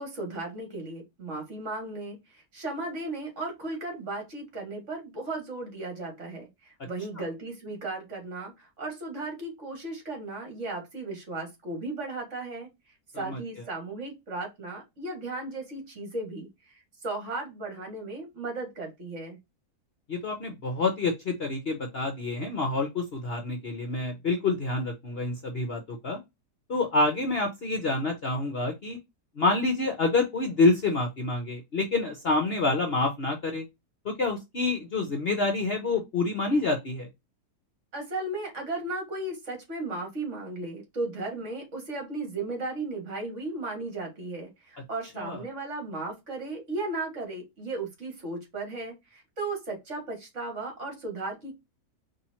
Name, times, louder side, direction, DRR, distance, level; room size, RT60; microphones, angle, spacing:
voice 1, 0.0-12.7 13.1-16.7 17.0-19.4 37.9-51.6, right 2 dB, 45° right, 1.9 m, -35 dB
voice 2, 20.1-26.2 26.7-29.0 29.4-33.6 34.0-37.1 45.2-45.4, left 3 dB, 50° left, 0.8 m, -27 dB
4.3 x 2.8 x 4.2 m
omnidirectional pair, 1.8 m